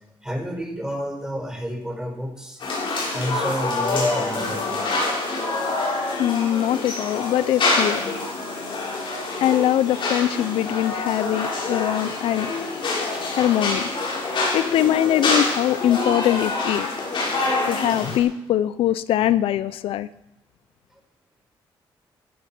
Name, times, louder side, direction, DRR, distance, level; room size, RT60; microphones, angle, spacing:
voice 1, 0.2-4.9 13.1-13.2, equal, 5° right, 3 dB, 5.8 m, -30 dB
sound 1, 2.6-18.2, left 3 dB, 65° left, 7.3 m, -26 dB
voice 2, 6.2-8.0 9.4-12.5 13.3-13.9 14.5-16.9 17.6-20.1, left 12 dB, 85° left, 16 dB, 0.6 m, -22 dB
16.5 x 14.0 x 6.1 m, 0.88 s
cardioid pair, 75°, 9 cm